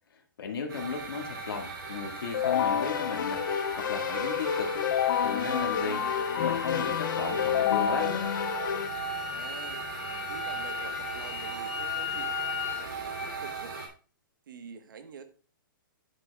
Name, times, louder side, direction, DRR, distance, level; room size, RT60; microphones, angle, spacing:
voice 1, 0.4-4.9 5.2-8.3, left 5 dB, 85° left, 3 dB, 2.0 m, -35 dB
sound 1, 0.7-13.9, right 5 dB, 85° right, 2.9 m, -38 dB
Keyboard (musical), 2.3-8.9, left 9 dB, 60° left, 0.5 m, -29 dB
sound 2, 3.2-12.9, left 9 dB, 25° left, 2.2 m, -39 dB
voice 2, 9.3-9.8 10.3-13.7 14.5-15.2, right 6 dB, 65° right, 9 dB, 1.2 m, -46 dB
10.5 x 7.7 x 2.3 m, 0.39 s
hypercardioid pair, 165°, 12 cm